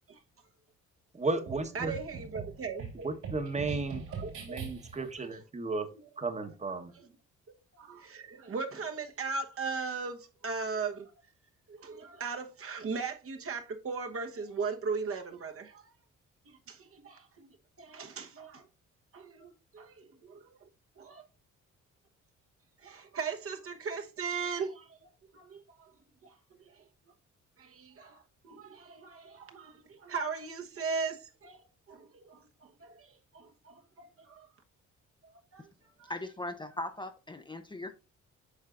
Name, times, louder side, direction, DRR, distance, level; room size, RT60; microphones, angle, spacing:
voice 1, 1.1-2.0 3.0-4.0 4.4-5.9 6.2-6.9, right 3 dB, 25° right, 1.2 m, -34 dB
sound 1, 1.5-5.1, right 5 dB, 80° right, 3.6 m, -42 dB
voice 2, 1.7-3.1 4.1-4.6 5.2-5.3 7.0-7.1 7.8-11.1 11.7-15.8 16.7-17.5 17.8-18.6 19.1-20.6 21.0-21.2 22.8-25.1 25.3-25.9 26.2-26.3 27.6-31.6 31.9-32.4 32.8-33.1 33.3-34.5 35.2-35.6 36.0-36.1, right 5 dB, 50° right, 1.2 m, -38 dB
voice 3, 36.1-37.9, left 1 dB, 15° left, 0.7 m, -39 dB
8.7 x 5.5 x 2.5 m
cardioid pair, 90°, 30 cm